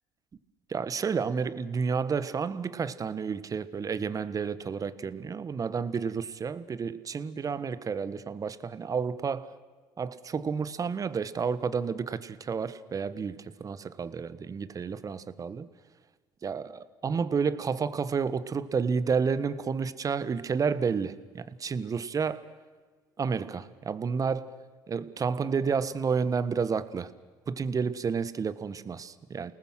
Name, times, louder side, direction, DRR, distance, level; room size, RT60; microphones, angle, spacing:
voice 1, 0.7-9.5 10.0-15.7 16.4-22.4 23.2-24.5 24.9-27.1 27.5-29.5, right 5 dB, 35° right, 14 dB, 1.4 m, -30 dB
29.0 x 19.0 x 6.3 m, 1.4 s
hypercardioid pair, 70°, 10 cm